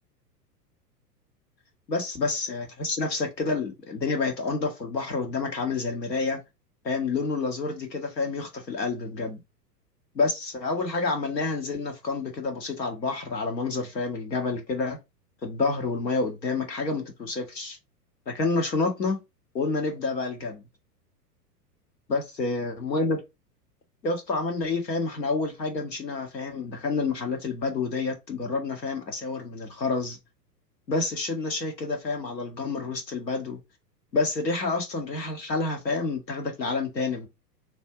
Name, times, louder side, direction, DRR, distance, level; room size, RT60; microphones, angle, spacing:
voice 1, 1.9-6.4 6.8-9.4 10.1-15.0 15.4-17.8 18.3-19.2 19.5-20.6 22.1-23.2 24.0-30.2 30.9-33.6 34.1-37.3, left 3 dB, 80° left, 1.6 m, -28 dB
3.2 x 2.7 x 4.4 m
figure-of-eight pair, 100°, 49 cm